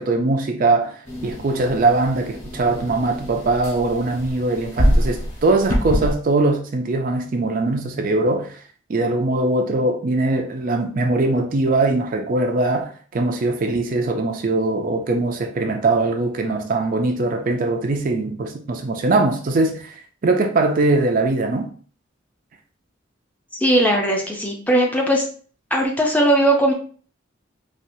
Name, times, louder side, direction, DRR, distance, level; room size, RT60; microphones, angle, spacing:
voice 1, 0.0-8.6 8.9-21.7, right 2 dB, 45° right, 0.4 m, -21 dB
sound 1, 1.0-6.1, equal, 35° left, 1.0 m, -25 dB
voice 2, 23.5-25.2 25.7-26.7, right 1 dB, 10° left, 0.5 m, -18 dB
4.2 x 2.4 x 2.6 m
head